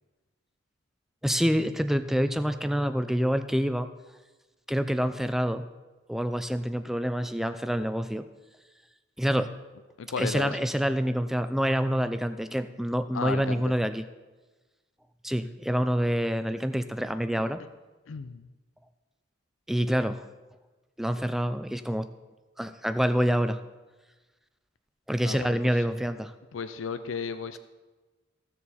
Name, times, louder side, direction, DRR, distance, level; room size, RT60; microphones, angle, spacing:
voice 1, 1.2-3.9 4.7-5.6 6.1-8.2 9.2-9.5 10.2-14.1 15.2-17.6 19.7-20.2 21.0-22.1 22.6-23.6 25.1-26.3, equal, ahead, 10 dB, 0.3 m, -27 dB
voice 2, 10.0-10.5 13.1-13.7 18.1-18.5 25.2-25.9 26.5-27.6, left 5 dB, 85° left, 11 dB, 0.5 m, -34 dB
15.0 x 7.0 x 4.2 m, 1.2 s
head